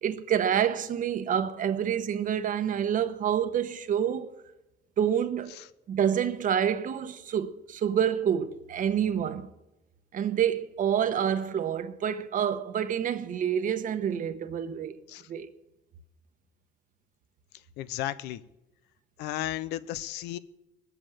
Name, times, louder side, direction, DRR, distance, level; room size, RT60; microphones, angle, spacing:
voice 1, 0.0-4.3 5.0-5.6 5.9-9.5 10.1-15.0 15.3-15.5, right 9 dB, 50° right, 1.1 m, -27 dB
voice 2, 17.8-18.4 19.2-20.4, left 14 dB, 90° left, 0.7 m, -34 dB
20.0 x 8.1 x 7.4 m
cardioid pair, 110°, 17 cm